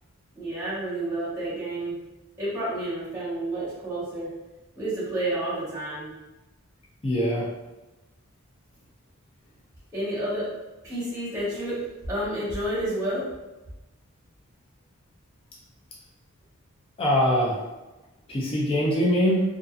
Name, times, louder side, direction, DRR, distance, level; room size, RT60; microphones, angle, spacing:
voice 1, 0.3-2.0 2.4-4.3 4.8-6.1 9.9-10.5 10.8-13.2, right 1 dB, 10° right, -9 dB, 1.1 m, -30 dB
voice 2, 7.0-7.5 17.0-17.6 18.3-19.4, equal, 25° left, -4 dB, 0.4 m, -22 dB
2.6 x 2.4 x 2.3 m, 1.1 s
head